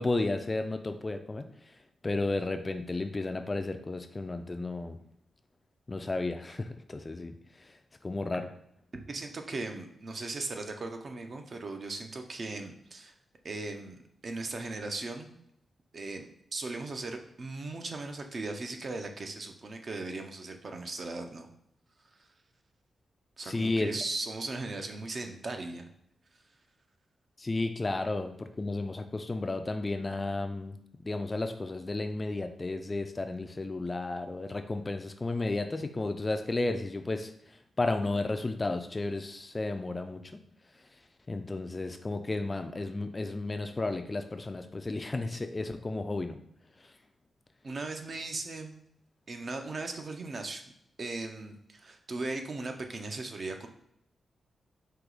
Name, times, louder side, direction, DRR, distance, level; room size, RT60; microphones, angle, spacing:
voice 1, 0.0-1.5 2.0-5.0 5.9-7.3 8.0-8.5 23.4-23.9 27.4-30.8 31.0-37.3 37.8-40.4 41.3-46.4, left 2 dB, 25° left, 7 dB, 0.3 m, -33 dB
voice 2, 9.1-13.1 13.4-15.3 15.9-21.5 23.4-25.9 47.6-48.8 49.3-50.6 51.0-53.7, right 3 dB, 45° right, 5 dB, 0.6 m, -38 dB
4.6 x 2.9 x 3.8 m, 0.76 s
wide cardioid pair, 125°, 0 cm